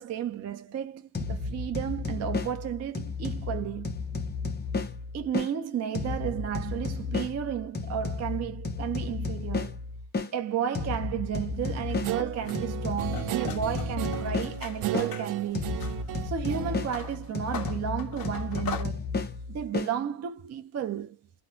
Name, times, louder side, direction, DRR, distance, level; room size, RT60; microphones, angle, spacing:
voice 1, 0.0-3.9 5.1-9.8 10.3-15.8 16.2-19.1 19.5-21.2, right 9 dB, 35° right, 0.4 m, -33 dB
sound 1, 1.1-5.5 5.9-10.3 10.7-15.1 15.5-19.9, left 3 dB, 20° left, 0.6 m, -33 dB
sound 2, 11.5-15.3 15.7-18.8, left 5 dB, 45° left, 0.9 m, -41 dB
Guitar, 12.0-17.9, right 12 dB, 80° right, 0.7 m, -35 dB
2.5 x 2.2 x 2.9 m
cardioid pair, 145°, 50 cm